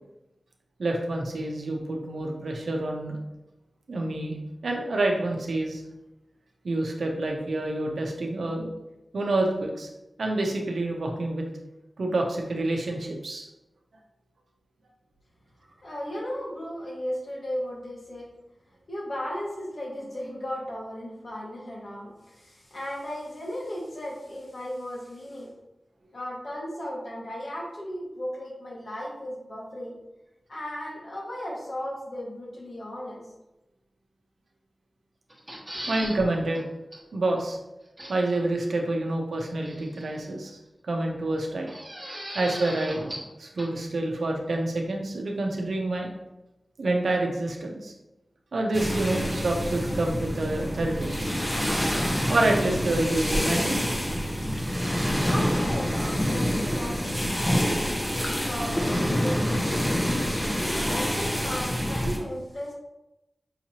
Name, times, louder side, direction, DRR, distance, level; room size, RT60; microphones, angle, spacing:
voice 1, 0.8-3.2 3.9-4.4 4.6-5.8 6.6-8.7 9.1-9.9 10.2-11.5 12.0-13.5 35.9-36.6 37.1-37.6 38.1-40.6 40.9-41.7 42.3-46.1 46.8-47.9 48.5-51.2 52.3-53.9, right 2 dB, 85° right, 1 dB, 0.7 m, -27 dB
voice 2, 15.8-18.3 18.9-25.5 26.1-29.9 30.5-33.2 35.7-35.9 55.0-57.8 58.0-62.7, equal, 65° left, -4 dB, 1.5 m, -36 dB
sound 1, 35.3-36.2 36.5-36.6 36.9-37.0 38.0-38.4 39.6-40.3 41.7-43.3 43.6-43.7, equal, 25° right, 1.1 m, -38 dB
sound 2, 48.7-62.2, equal, 20° left, 0.8 m, -27 dB
5.7 x 2.8 x 2.9 m, 0.94 s
wide cardioid pair, 85°, 0 cm